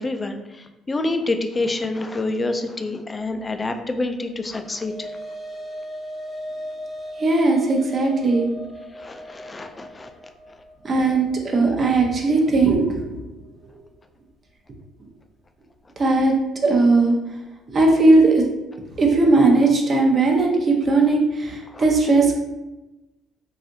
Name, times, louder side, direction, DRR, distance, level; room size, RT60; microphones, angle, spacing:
voice 1, 0.0-5.1 8.9-10.1 21.7-21.9, left 2 dB, 25° left, 6 dB, 0.3 m, -27 dB
sound 1, 4.3-12.8, equal, 10° right, 1.0 m, -38 dB
voice 2, 7.2-8.5 10.8-13.0 16.0-16.3 16.6-17.2 17.7-18.5 19.0-22.3, right 3 dB, 40° right, 1 dB, 0.7 m, -18 dB
3.3 x 2.6 x 2.6 m, 1.0 s
supercardioid pair, 80°, 0 cm